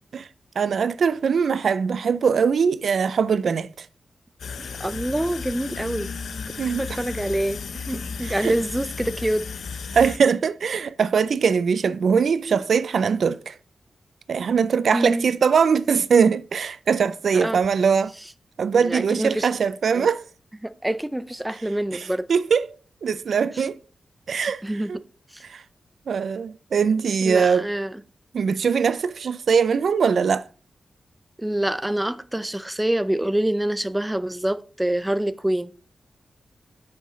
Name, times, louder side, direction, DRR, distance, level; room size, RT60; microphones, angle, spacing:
voice 1, 0.6-3.9 6.6-6.8 8.2-8.5 9.9-13.5 14.3-18.1 18.6-20.2 21.9-22.7 23.0-23.8 24.3-24.6 24.9-25.0 25.5-25.6 26.1-27.7 28.3-30.4, right 6 dB, 75° right, 0.4 m, -21 dB
sound 1, 4.4-10.2, left 5 dB, 85° left, 0.7 m, -34 dB
voice 2, 4.6-6.1 6.6-9.4 12.5-12.6 14.9-15.2 17.3-17.6 18.7-19.5 19.9-20.1 20.6-22.3 23.5-23.7 24.6-25.0 25.3-25.4 27.2-28.0 31.4-35.7, right 1 dB, 10° right, 0.4 m, -26 dB
9.2 x 6.4 x 3.1 m
wide cardioid pair, 115°, 0 cm